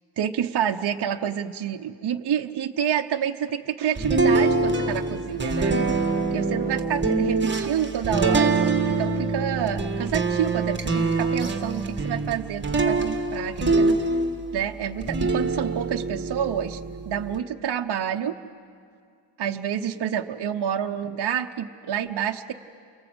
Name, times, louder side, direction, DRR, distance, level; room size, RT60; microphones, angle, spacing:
voice 1, 0.2-5.7 6.3-14.0 14.5-16.8 17.1-18.3 19.4-22.5, right 9 dB, 55° right, 4 dB, 0.8 m, -28 dB
sound 1, 4.0-14.6 15.0-17.3, right 3 dB, 25° right, 1.5 m, -24 dB
29.5 x 23.5 x 7.9 m, 2.3 s
wide cardioid pair, 150°, 47 cm